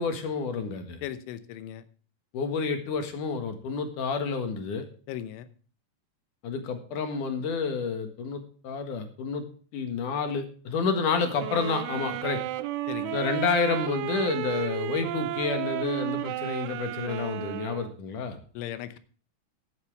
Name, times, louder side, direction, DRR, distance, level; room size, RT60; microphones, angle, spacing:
voice 1, 0.0-1.0 2.3-4.9 6.4-9.4 9.7-12.4 13.1-18.4, left 5 dB, 55° left, 6 dB, 2.5 m, -29 dB
voice 2, 1.0-1.8 5.1-5.5 12.9-13.2 18.6-19.0, left 11 dB, 85° left, 12 dB, 3.4 m, -37 dB
sound 1, 11.4-18.0, right 15 dB, 85° right, 3.2 m, -33 dB
14.5 x 11.5 x 3.4 m, 0.42 s
omnidirectional pair, 5.4 m